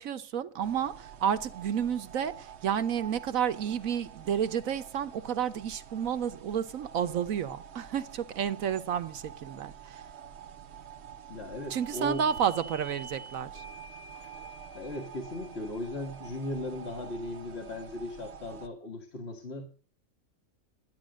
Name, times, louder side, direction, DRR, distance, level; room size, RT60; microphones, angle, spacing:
voice 1, 0.0-10.0 11.7-13.6, right 8 dB, 70° right, 1.3 m, -31 dB
sound 1, 0.6-18.7, right 8 dB, 55° right, 1.0 m, -47 dB
voice 2, 11.3-12.2 14.7-19.7, left 1 dB, 45° left, 1.8 m, -37 dB
sound 2, 12.9-13.0 13.5-18.4, left 2 dB, 80° left, 5.8 m, -56 dB
11.5 x 10.5 x 6.3 m
omnidirectional pair, 1.5 m